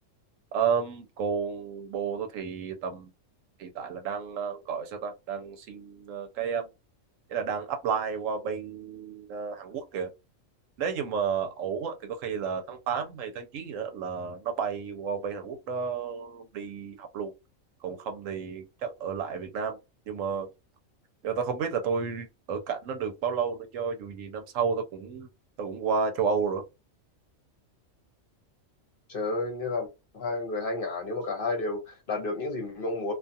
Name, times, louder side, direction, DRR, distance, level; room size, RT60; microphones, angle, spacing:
voice 1, 0.5-3.1 3.6-6.7 7.3-10.1 10.8-17.3 17.8-19.8 20.1-20.5 21.2-25.3 25.6-26.6, right 6 dB, 80° right, 1.0 m, -31 dB
voice 2, 29.1-29.9 30.1-33.1, left 3 dB, 50° left, 0.9 m, -31 dB
2.5 x 2.3 x 2.6 m
omnidirectional pair, 1.4 m